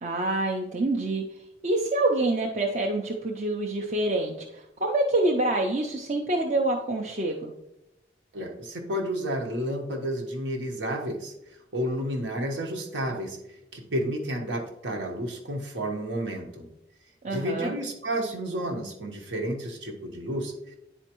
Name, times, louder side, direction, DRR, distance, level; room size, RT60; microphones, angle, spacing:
voice 1, 0.0-1.2 1.6-7.5 17.2-17.7, right 2 dB, 40° right, 1 dB, 0.5 m, -26 dB
voice 2, 8.3-13.4 13.7-16.7 17.3-20.8, equal, 90° right, 2 dB, 1.1 m, -31 dB
9.9 x 4.3 x 3.0 m, 0.86 s
head